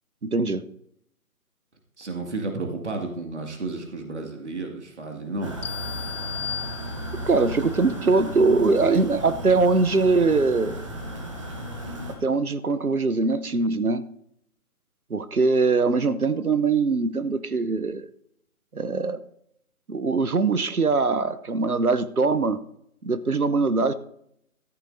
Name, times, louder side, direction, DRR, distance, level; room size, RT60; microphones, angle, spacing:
voice 1, 0.2-0.6 7.3-10.8 12.1-14.1 15.1-18.1 18.7-19.2 19.9-22.6 23.0-23.9, right 4 dB, 80° right, 13 dB, 1.0 m, -22 dB
voice 2, 2.0-5.5, right 3 dB, 50° right, 2 dB, 2.3 m, -32 dB
sound 1, 5.4-12.2, equal, 20° right, 1.2 m, -35 dB
sound 2, 5.6-7.4, left 9 dB, 85° left, 0.6 m, -35 dB
14.0 x 14.0 x 2.7 m, 0.74 s
figure-of-eight pair, 150°, 43 cm